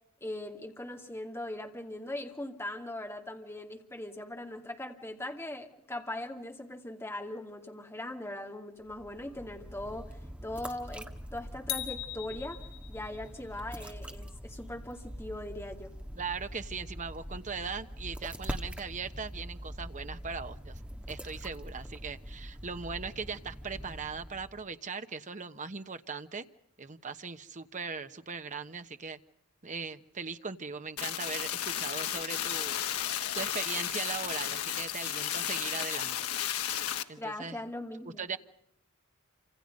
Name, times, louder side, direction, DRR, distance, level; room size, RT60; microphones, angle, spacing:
voice 1, 0.2-12.6 12.9-15.9 37.2-38.4, left 1 dB, 10° left, 2.4 m, -40 dB
sound 1, 8.8-24.7, equal, 5° right, 1.6 m, -44 dB
sound 2, 11.7-13.3, left 13 dB, 65° left, 2.8 m, -39 dB
voice 2, 16.1-20.8 21.1-26.4 26.8-29.2 29.6-32.8 33.1-36.3 37.1-37.6 38.0-38.4, right 5 dB, 35° right, 1.1 m, -39 dB
sound 3, 31.0-37.0, left 10 dB, 80° left, 1.4 m, -33 dB
28.0 x 26.5 x 5.4 m
head